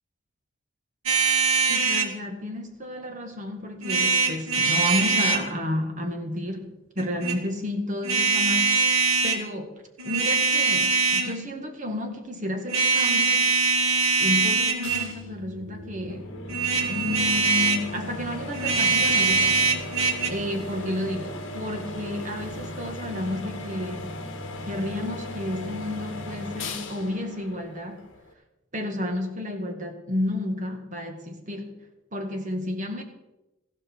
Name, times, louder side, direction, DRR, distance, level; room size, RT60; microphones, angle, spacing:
sound 1, 1.1-2.1 3.8-5.5 7.0-7.4 8.0-9.4 10.0-11.4 12.7-15.1 16.5-17.9 18.5-20.3, right 4 dB, 85° right, 1.8 m, -22 dB
voice 1, 1.7-13.5 14.2-16.3 16.8-19.6 20.2-24.2 24.7-28.1 28.7-31.8 32.1-33.0, left 1 dB, 35° right, 4 dB, 1.8 m, -31 dB
sound 2, 14.8-28.3, left 1 dB, 60° left, 1.9 m, -37 dB
15.0 x 12.5 x 4.7 m, 0.98 s
head